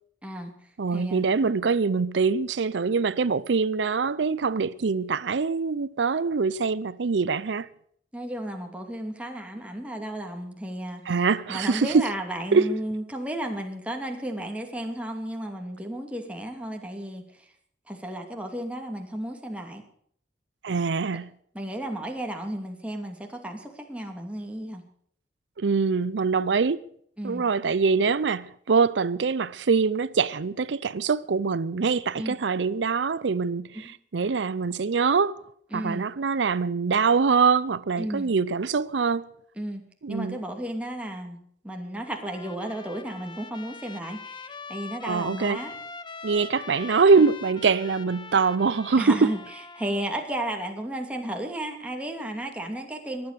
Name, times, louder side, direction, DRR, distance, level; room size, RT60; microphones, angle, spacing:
voice 1, 0.2-0.5 0.9-1.3 8.1-17.2 17.9-19.8 21.5-24.8 27.2-27.4 32.2-32.4 33.7-33.9 35.7-36.0 38.0-38.3 39.6-39.8 40.1-41.4 41.6-45.7 49.0-49.4 49.8-53.3, right 1 dB, 5° right, 2.5 m, -33 dB
voice 2, 0.8-7.7 11.1-12.1 12.5-12.7 20.6-21.3 25.6-26.8 27.2-35.4 35.7-39.3 40.0-40.4 45.0-45.6 46.2-49.3, right 5 dB, 90° right, 0.5 m, -24 dB
Trumpet, 42.1-50.3, left 5 dB, 25° left, 0.9 m, -43 dB
23.0 x 8.7 x 6.7 m
head